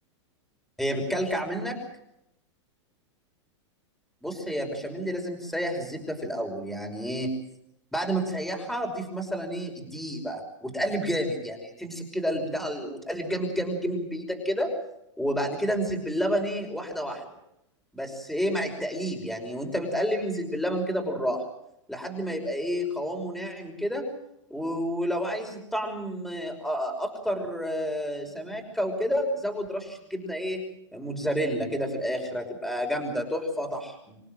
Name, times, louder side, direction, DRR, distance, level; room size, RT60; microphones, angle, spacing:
voice 1, 0.8-1.8 4.2-7.4 7.9-14.7 15.2-17.3 17.9-21.4 21.9-24.1 24.5-30.6 30.9-34.2, equal, ahead, 2 dB, 5.6 m, -30 dB
27.0 x 17.0 x 7.8 m, 0.78 s
hypercardioid pair, 125°, 16 cm